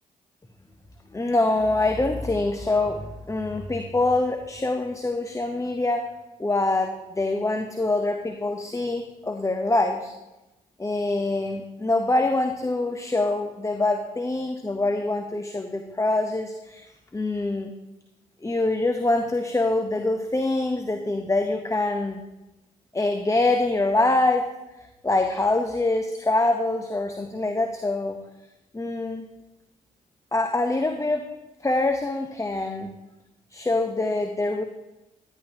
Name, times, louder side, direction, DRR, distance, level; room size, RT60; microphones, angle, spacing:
voice 1, 1.1-6.1 6.4-10.1 10.8-16.8 17.1-17.7 18.4-22.2 22.9-24.5 25.0-28.2 28.7-29.3 30.3-31.3 31.6-32.9 33.5-34.6, left 2 dB, 20° left, 5 dB, 0.8 m, -25 dB
11.5 x 11.0 x 2.9 m, 1.0 s
hypercardioid pair, 40°, 17 cm